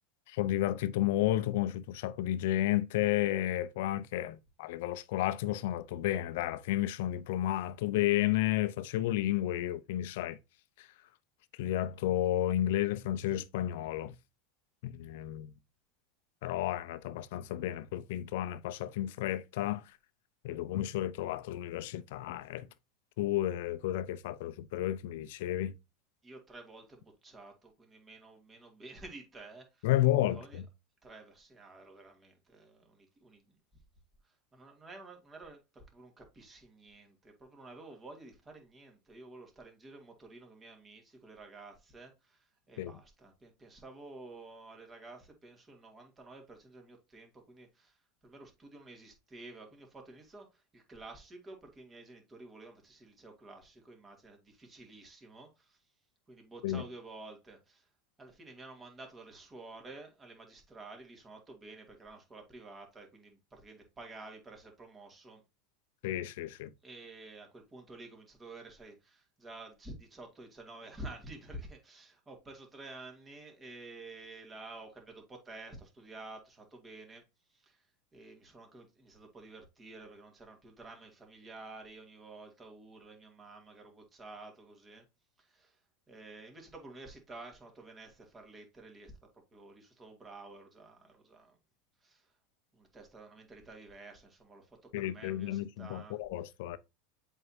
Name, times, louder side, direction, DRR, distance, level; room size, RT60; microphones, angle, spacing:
voice 1, 0.3-10.4 10.8-10.9 11.6-14.2 14.8-15.5 16.4-19.8 20.4-22.7 23.2-25.7 29.8-30.6 42.8-42.9 56.6-56.8 66.0-66.7 94.9-96.8, left 13 dB, 65° left, 0.6 m, -32 dB
voice 2, 26.2-29.9 30.3-30.6 31.0-33.6 34.2-55.8 56.3-57.9 58.2-65.4 66.8-77.2 77.5-77.9 78.1-85.1 85.4-85.8 86.1-91.6 92.0-92.3 92.7-96.2, right 2 dB, 20° right, 2.5 m, -51 dB
7.7 x 4.6 x 2.8 m
hypercardioid pair, 85°, 0 cm